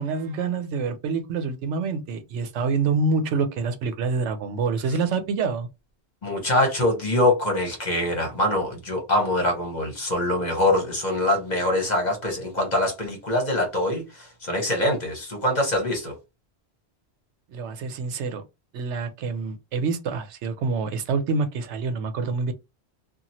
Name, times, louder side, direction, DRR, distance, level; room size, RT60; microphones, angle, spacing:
voice 1, 0.0-5.7 17.5-18.4 18.7-22.5, right 4 dB, 85° right, 0.9 m, -26 dB
voice 2, 6.2-16.1, left 1 dB, 40° left, 1.1 m, -24 dB
2.9 x 2.4 x 2.7 m
omnidirectional pair, 1.2 m